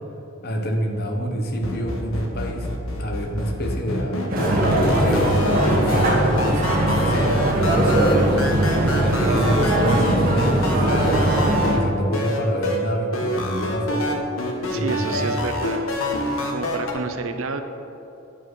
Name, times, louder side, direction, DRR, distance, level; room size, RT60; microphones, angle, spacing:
voice 1, 0.4-2.7 3.0-4.2 4.8-8.5 9.0-11.3 11.7-14.1 14.7-15.4, equal, 50° left, 2 dB, 1.1 m, -27 dB
sound 1, 1.6-11.8 12.1-12.8 13.1-16.9, left 1 dB, 90° left, 1.3 m, -27 dB
sound 2, 4.3-11.7, right 1 dB, 45° right, 1.6 m, -20 dB
voice 2, 14.7-16.0 16.5-17.6, right 4 dB, 85° right, 7 dB, 0.7 m, -30 dB
10.0 x 4.9 x 6.2 m, 2.9 s
head